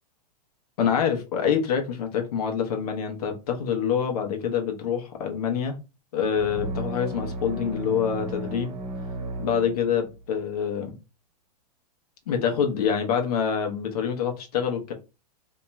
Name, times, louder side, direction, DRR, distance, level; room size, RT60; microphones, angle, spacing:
voice 1, 0.8-5.8 6.1-8.7 9.4-10.9 12.3-14.9, left 7 dB, 65° left, 1.0 m, -26 dB
sound 1, 6.4-10.2, right 1 dB, 75° right, 1.0 m, -34 dB
4.0 x 2.8 x 2.3 m
hypercardioid pair, 140°, 21 cm